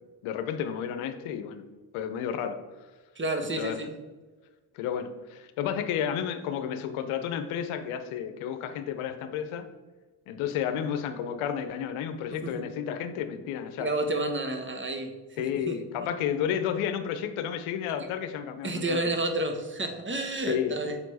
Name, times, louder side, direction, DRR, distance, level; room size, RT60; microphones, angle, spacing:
voice 1, 0.2-1.6 1.9-2.6 3.4-3.8 4.7-9.7 10.3-13.9 15.4-19.1 20.5-20.7, left 9 dB, 75° left, 8 dB, 0.8 m, -31 dB
voice 2, 3.2-3.9 12.3-12.6 13.8-15.1 15.7-16.1 18.6-20.9, right 2 dB, 25° right, 6 dB, 1.2 m, -30 dB
7.1 x 4.5 x 4.1 m, 1.3 s
hypercardioid pair, 50°, 49 cm